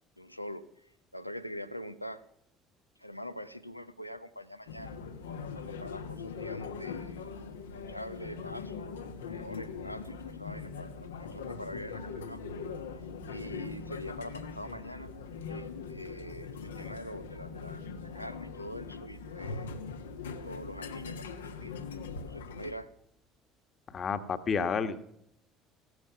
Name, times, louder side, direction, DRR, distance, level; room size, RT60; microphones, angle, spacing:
voice 1, 0.2-2.2 3.0-4.9 5.5-7.3 7.7-8.9 9.2-12.4 13.2-15.1 15.5-19.7 20.4-21.7 22.2-22.9, equal, 90° left, 12 dB, 0.9 m, -44 dB
sound 1, 4.7-22.7, left 5 dB, 75° left, 1.4 m, -41 dB
voice 2, 23.9-25.0, left 6 dB, 35° left, 10 dB, 1.6 m, -30 dB
16.5 x 13.5 x 6.0 m, 0.75 s
figure-of-eight pair, 60°, 0 cm